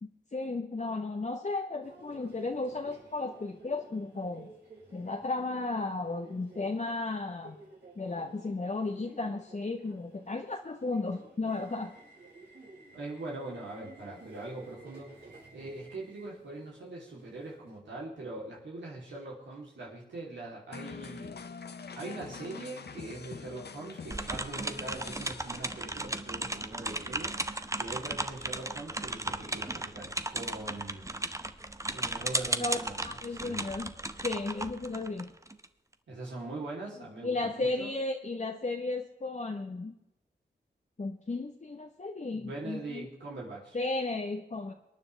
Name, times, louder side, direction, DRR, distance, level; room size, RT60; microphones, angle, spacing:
voice 1, 0.0-4.5 4.9-7.6 8.0-11.9 32.6-32.8 33.0-33.9 34.2-35.3 37.2-39.9 41.0-43.1 43.7-44.7, left 3 dB, 40° left, 3 dB, 1.1 m, -34 dB
Subway metro underground, 1.8-17.8, right 3 dB, 70° right, 5.3 m, -55 dB
voice 2, 12.9-15.1 15.5-21.4 21.9-27.3 27.8-31.1 31.9-33.6 36.1-37.9 42.3-43.8, right 2 dB, 85° right, -4 dB, 3.3 m, -42 dB
sound 1, 20.7-26.4, left 5 dB, 65° left, 0.9 m, -45 dB
sound 2, 24.1-35.7, right 2 dB, 15° right, 0.9 m, -35 dB
22.5 x 9.7 x 3.4 m, 0.90 s
cardioid pair, 55°, 18 cm